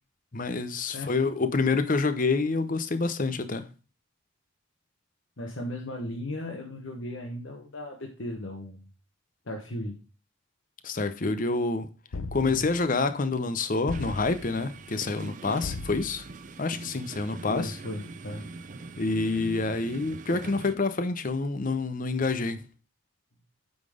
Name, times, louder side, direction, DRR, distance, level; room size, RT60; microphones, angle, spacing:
voice 1, 0.3-3.7 10.8-11.9 12.3-16.2 16.6-17.8 19.0-22.6, left 3 dB, 40° left, 0.7 m, -27 dB
voice 2, 5.4-8.9 9.5-10.0 12.4-12.6 17.5-18.5, left 1 dB, 65° left, 1.2 m, -36 dB
sound 1, 12.1-12.9 13.9-14.6 15.6-16.4, left 3 dB, 80° left, 0.7 m, -38 dB
sound 2, 13.9-20.8, right 3 dB, 40° right, 0.4 m, -43 dB
8.7 x 4.0 x 4.9 m
head